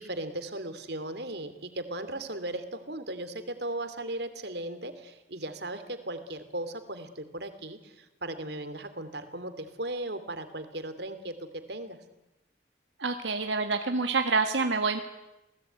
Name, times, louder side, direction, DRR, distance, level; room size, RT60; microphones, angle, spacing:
voice 1, 0.0-12.0, right 1 dB, 65° right, 10 dB, 2.8 m, -37 dB
voice 2, 13.0-15.0, right 4 dB, 85° right, 6 dB, 1.7 m, -27 dB
29.0 x 18.5 x 9.3 m, 0.98 s
head